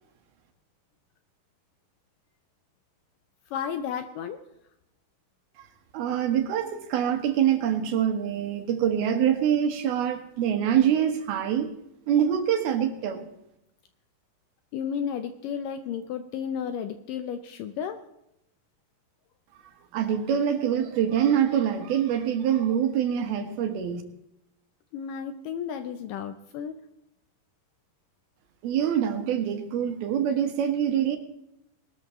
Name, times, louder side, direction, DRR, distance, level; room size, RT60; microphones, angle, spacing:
voice 1, 3.5-4.4 14.7-18.0 24.9-26.8, left 8 dB, 75° left, 8 dB, 2.1 m, -33 dB
voice 2, 5.9-11.7 12.1-13.3 19.9-24.0 28.6-31.2, right 9 dB, 75° right, 6 dB, 3.3 m, -25 dB
20.5 x 13.0 x 3.2 m, 0.80 s
omnidirectional pair, 4.5 m